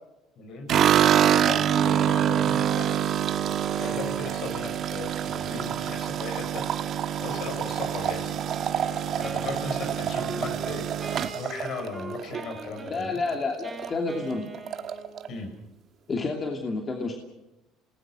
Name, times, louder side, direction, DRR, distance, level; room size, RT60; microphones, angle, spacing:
voice 1, 0.4-3.3 3.8-6.9 7.2-8.4 9.2-11.0 11.3-13.2 15.3-15.5, left 3 dB, 55° left, 5 dB, 6.5 m, -37 dB
sound 1, 0.7-12.9 13.3-13.9 14.2-14.3 14.5-15.3, right 9 dB, 50° right, 1.3 m, -26 dB
Wind instrument woodwind instrument, 7.8-15.5, right 2 dB, 15° right, 7.6 m, -42 dB
voice 2, 12.9-14.5 16.1-17.1, left 3 dB, 30° left, 2 dB, 2.8 m, -29 dB
28.0 x 19.5 x 6.5 m, 0.96 s
cardioid pair, 120°, 0 cm